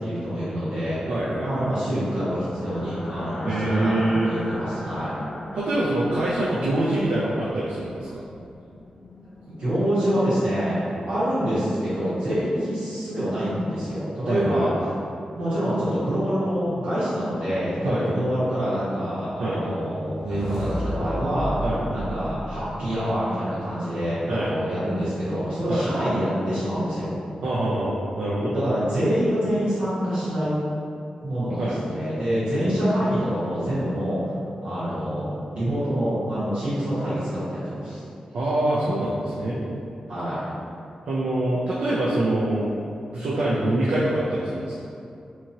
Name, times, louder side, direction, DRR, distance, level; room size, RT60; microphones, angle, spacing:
voice 1, 0.0-1.0 1.4-5.1 9.5-10.8 11.1-14.7 15.3-21.6 21.9-27.1 28.5-30.5 31.2-34.3 34.6-38.0 40.1-40.4, equal, 55° right, -12 dB, 1.3 m, -26 dB
voice 2, 1.1-1.7 3.4-4.3 5.5-8.2 14.2-14.7 17.8-18.1 19.4-19.6 21.6-21.8 24.3-24.5 25.7-25.9 27.4-28.5 31.6-31.8 38.3-39.6 41.1-42.7 43.1-44.7, right 1 dB, 75° right, -7 dB, 0.4 m, -25 dB
sound 1, 2.1-10.1, left 1 dB, 40° left, 0.3 m, -39 dB
sound 2, 19.9-23.2, equal, 10° right, 0.8 m, -33 dB
2.9 x 2.6 x 2.7 m, 2.6 s
wide cardioid pair, 170°, 2 cm